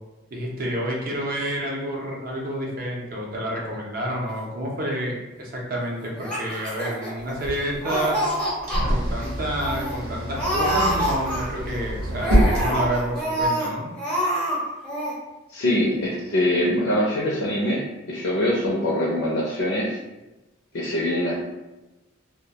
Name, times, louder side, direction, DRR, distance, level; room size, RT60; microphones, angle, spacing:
voice 1, 0.3-8.2 8.9-13.9, right 1 dB, 45° right, -2 dB, 0.5 m, -29 dB
Laughter, 6.1-7.5 7.8-8.8 9.2-9.3 9.6-10.0 10.3-11.7 12.1-13.7 14.0-14.6 14.8-15.1, equal, 5° left, 0.5 m, -26 dB
sound 1, 7.2-13.5, equal, 85° right, 0.8 m, -26 dB
voice 2, 15.5-20.0 20.7-21.3, left 1 dB, 75° left, -4 dB, 0.4 m, -23 dB
2.2 x 2.1 x 2.7 m, 1.0 s
head